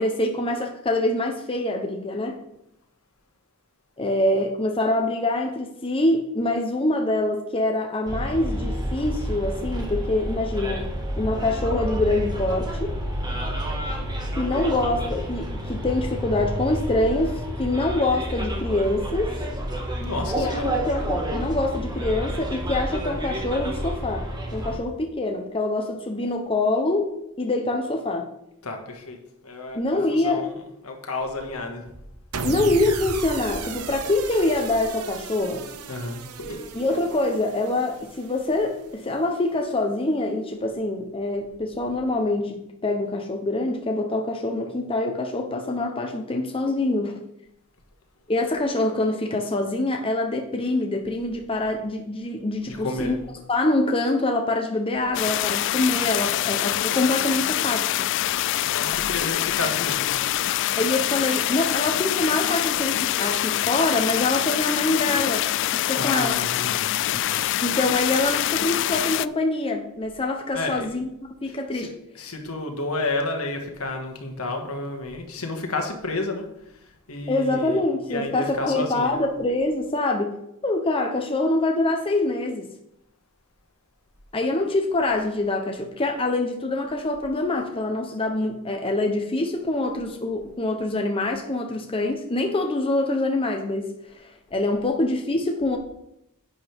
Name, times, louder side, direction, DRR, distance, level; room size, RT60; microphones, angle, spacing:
voice 1, 0.0-2.4 4.0-10.8 11.2-12.9 14.4-19.3 20.2-27.1 27.4-28.3 29.7-30.5 32.4-35.7 36.7-47.1 48.3-53.2 53.5-58.1 60.8-65.5 65.7-66.4 67.6-71.1 71.4-71.9 77.3-80.4 80.6-82.7 84.3-95.8, left 2 dB, 25° left, 2 dB, 0.9 m, -25 dB
Bus, 8.1-24.8, equal, 20° right, 1.7 m, -29 dB
voice 2, 20.0-20.7 28.6-29.2 29.4-29.8 30.1-30.5 30.8-31.8 35.9-36.9 52.7-53.2 58.6-60.1 66.0-67.4 70.5-70.9 71.5-71.9 72.1-77.8 78.1-79.2, left 2 dB, 70° left, 3 dB, 1.9 m, -31 dB
sound 1, 32.3-38.7, right 5 dB, 90° right, 0.9 m, -35 dB
sound 2, 55.1-69.3, left 13 dB, 55° left, 0.3 m, -25 dB
10.5 x 8.7 x 3.6 m, 0.82 s
head